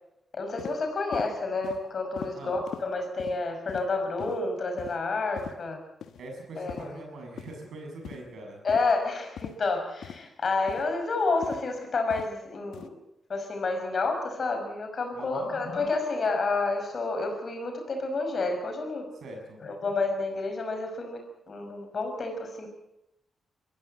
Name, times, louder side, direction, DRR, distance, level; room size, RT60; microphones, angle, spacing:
voice 1, 0.3-5.8 6.6-7.0 8.6-13.0 13.3-19.1 19.6-21.2 21.5-22.7, left 3 dB, 55° left, 4 dB, 6.0 m, -29 dB
sound 1, 0.6-0.8 1.1-1.3 1.6-1.8 2.2-2.3 2.7-2.8 3.2-3.4 3.7-3.9 4.2-4.4 4.8-4.9 5.4-5.5 6.0-6.2 6.7-6.9 7.4-7.6 8.0-8.3 8.7-8.9 9.4-9.5 10.0-10.2 10.7-10.9 11.4-11.6 12.1-12.3 12.7-12.9, left 8 dB, 70° left, 1.2 m, -40 dB
voice 2, 6.2-8.6 15.1-15.5 19.2-19.6, right 2 dB, 65° right, 2 dB, 6.8 m, -42 dB
23.0 x 14.5 x 7.9 m, 0.86 s
hypercardioid pair, 40°, 0 cm